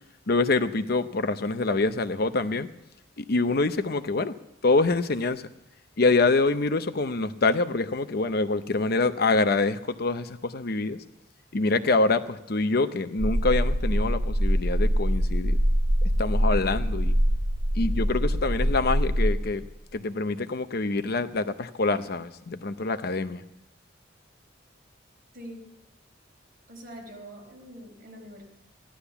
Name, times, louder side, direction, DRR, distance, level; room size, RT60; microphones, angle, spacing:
voice 1, 0.3-2.7 3.2-4.3 4.6-5.5 6.0-11.0 11.5-15.6 16.2-17.1 17.7-19.7 19.9-23.4, left 3 dB, 55° left, 11 dB, 0.7 m, -25 dB
sound 1, 13.2-19.7, equal, 70° right, 1.5 m, -24 dB
voice 2, 25.3-25.7 26.7-28.5, equal, 50° right, 1 dB, 4.4 m, -44 dB
15.0 x 11.5 x 7.0 m, 0.87 s
head